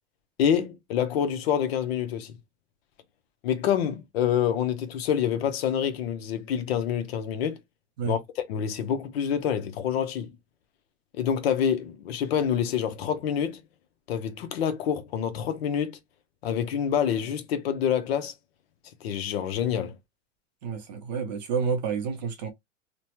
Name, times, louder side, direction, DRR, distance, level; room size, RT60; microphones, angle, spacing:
voice 1, 0.4-2.3 3.4-7.6 8.0-8.2 8.5-10.3 11.2-13.6 14.1-16.0 16.4-18.3 19.0-19.9, left 8 dB, 50° left, 0.7 m, -27 dB
voice 2, 20.6-22.5, right 6 dB, 35° right, 0.5 m, -29 dB
3.1 x 2.1 x 2.8 m
supercardioid pair, 165°, 39 cm